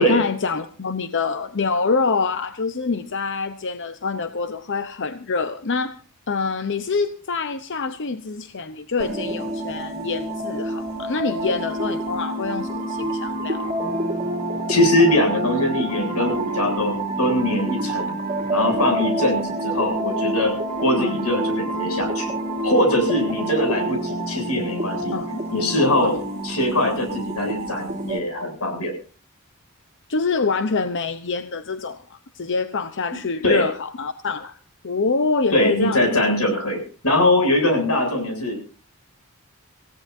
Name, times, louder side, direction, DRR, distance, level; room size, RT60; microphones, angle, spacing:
voice 1, 0.0-6.0 6.3-13.8 21.0-21.2 25.1-25.4 26.0-26.2 30.1-34.5 34.8-36.2, left 4 dB, 55° left, 9 dB, 0.9 m, -26 dB
sound 1, 9.0-28.2, right 1 dB, 30° right, 2.8 m, -27 dB
voice 2, 14.7-18.1 18.5-20.5 20.8-22.3 22.6-25.2 25.5-26.1 26.4-28.9 33.4-33.6 35.5-38.6, left 1 dB, 90° left, 4 dB, 7.8 m, -21 dB
27.0 x 16.5 x 2.7 m, 0.37 s
head